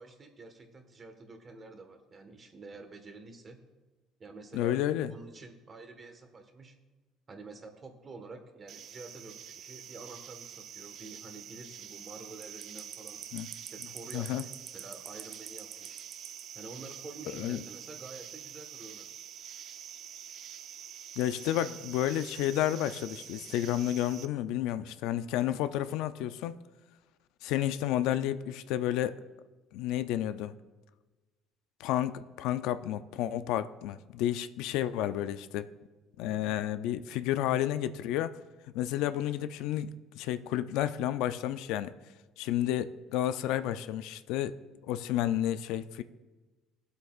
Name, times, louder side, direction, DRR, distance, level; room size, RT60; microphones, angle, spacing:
voice 1, 0.0-3.6 4.2-4.8 5.1-6.8 7.3-13.3 13.6-16.0 16.5-19.1 36.3-36.6, right 3 dB, 30° right, 6 dB, 1.4 m, -48 dB
voice 2, 4.5-5.1 13.3-13.5 14.1-14.4 17.3-17.6 21.2-26.6 27.4-29.2 29.7-30.5 31.8-35.7 36.2-38.4 38.7-41.9 42.4-44.5 44.9-46.0, left 12 dB, 80° left, 12 dB, 0.4 m, -31 dB
sound 1, 8.7-24.3, right 9 dB, 60° right, 0.5 m, -46 dB
18.0 x 8.0 x 2.4 m, 1.2 s
cardioid pair, 110°, 0 cm